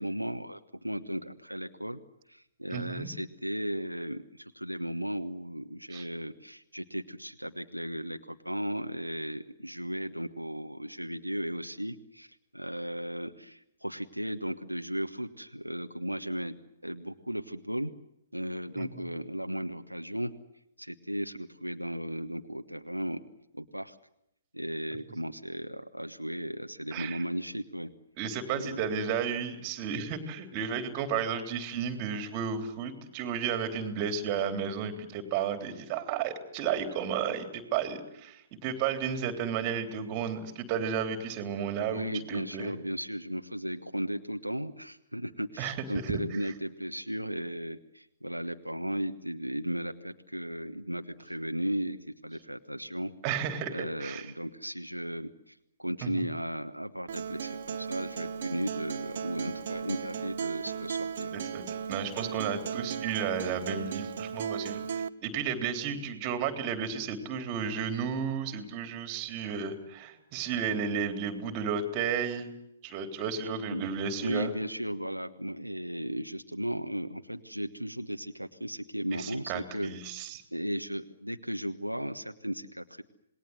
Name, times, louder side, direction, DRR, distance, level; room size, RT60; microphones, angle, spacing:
voice 1, 0.0-2.0 2.3-16.5 16.8-17.9 18.3-20.3 20.8-23.2 23.5-24.0 24.5-27.9 28.5-28.8 41.8-52.0 52.2-53.1 53.7-61.3 73.7-73.8 74.2-79.9 80.5-83.0, equal, 90° right, 7 dB, 1.2 m, -35 dB
voice 2, 2.7-3.1 5.9-6.0 18.8-19.1 26.9-27.2 28.2-42.7 45.6-45.8 46.0-46.1 53.2-54.3 56.0-56.3 61.3-72.5 72.8-74.5 79.1-80.4, right 7 dB, 30° right, 7 dB, 3.4 m, -33 dB
Acoustic guitar, 57.1-65.1, right 7 dB, 50° right, 1.1 m, -36 dB
27.5 x 20.5 x 7.9 m, 0.81 s
figure-of-eight pair, 125°, 0 cm